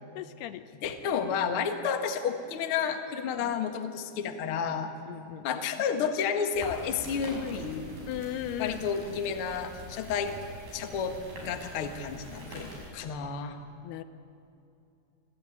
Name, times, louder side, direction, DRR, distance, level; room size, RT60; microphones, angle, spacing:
voice 1, 0.2-0.6 5.1-5.5 8.1-9.2 13.8-14.0, left 12 dB, 80° left, 12 dB, 2.7 m, -37 dB
voice 2, 0.8-4.9 5.4-7.8 8.6-10.3 10.7-11.2 11.4-13.6, left 7 dB, 55° left, 5 dB, 1.5 m, -31 dB
sound 1, 6.5-12.9, equal, 55° right, 7.8 m, -44 dB
27.0 x 16.0 x 9.0 m, 2.7 s
omnidirectional pair, 4.8 m